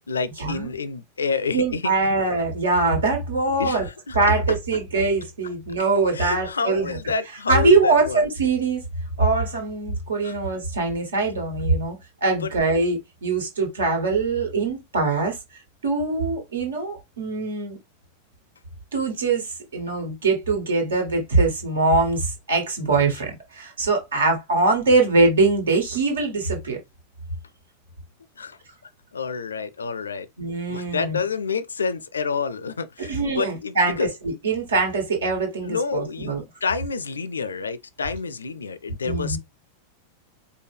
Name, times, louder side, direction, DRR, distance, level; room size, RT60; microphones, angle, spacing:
voice 1, 0.0-1.9 3.6-4.2 6.1-8.3 10.2-10.3 12.4-12.5 28.4-28.6 29.1-30.3 30.7-34.1 35.6-39.4, left 5 dB, 70° left, 0.4 m, -28 dB
voice 2, 1.5-3.8 4.1-7.0 7.5-8.8 9.2-15.4 15.8-17.8 18.9-26.8 30.4-31.2 33.0-36.4 39.0-39.4, right 3 dB, 65° right, 1.5 m, -22 dB
4.8 x 2.2 x 3.4 m
figure-of-eight pair, 90°, 0 cm